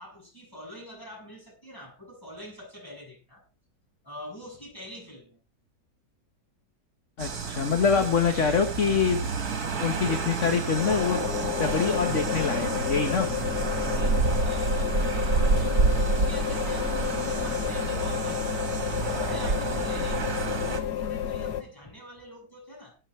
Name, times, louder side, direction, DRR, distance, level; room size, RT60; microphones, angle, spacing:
voice 1, 0.0-3.4 4.0-5.4 7.9-9.0 13.2-15.8 16.1-18.6 19.0-23.0, equal, 10° left, 7.2 m, -45 dB
voice 2, 7.2-9.2 9.8-11.2 11.6-13.3, left 5 dB, 50° left, 1.7 m, -25 dB
sound 1, 7.2-20.8, right 4 dB, 65° right, 2.4 m, -29 dB
sound 2, 10.8-21.6, left 10 dB, 90° left, 1.6 m, -31 dB
20.5 x 8.7 x 3.3 m
omnidirectional pair, 1.7 m